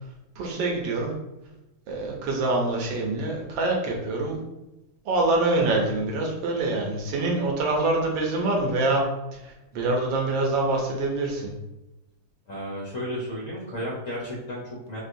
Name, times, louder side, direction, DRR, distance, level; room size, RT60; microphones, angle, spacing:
voice 1, 0.4-1.1 1.9-4.4 5.0-9.0 9.3-11.5, right 2 dB, 70° right, 0 dB, 1.3 m, -25 dB
voice 2, 12.5-15.0, equal, 75° left, -4 dB, 0.7 m, -33 dB
4.2 x 2.3 x 2.6 m, 0.97 s
omnidirectional pair, 2.4 m